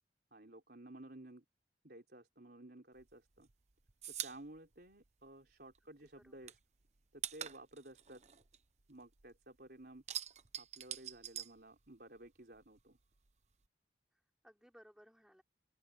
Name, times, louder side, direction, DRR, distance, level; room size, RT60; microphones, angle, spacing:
voice 1, 0.3-1.4 1.8-3.5 4.1-6.6 7.1-8.2 8.9-10.0 10.6-13.0, right 1 dB, 60° right, 4.5 m, -55 dB
sound 1, 3.0-5.8 6.1-9.4 9.7-12.3 12.5-13.6, right 10 dB, 40° right, 0.9 m, -46 dB
voice 2, 5.8-6.5 14.1-15.4, equal, 5° right, 4.8 m, -64 dB
open air
head